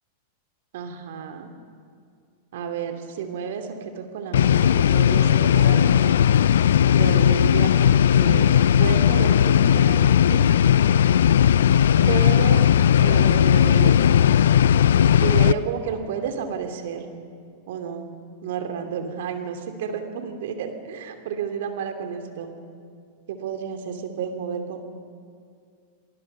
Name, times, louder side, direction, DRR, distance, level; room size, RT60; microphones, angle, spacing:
voice 1, 0.7-1.5 2.5-3.7 4.0-6.1 6.9-10.5 12.1-12.6 13.0-13.9 15.2-17.1 17.7-18.1 18.4-22.5 23.3-24.8, right 7 dB, 65° right, 6 dB, 2.6 m, -31 dB
sound 1, 4.3-15.5, left 9 dB, 70° left, 0.5 m, -17 dB
27.5 x 19.5 x 5.5 m, 2.3 s
hypercardioid pair, 95°, 0 cm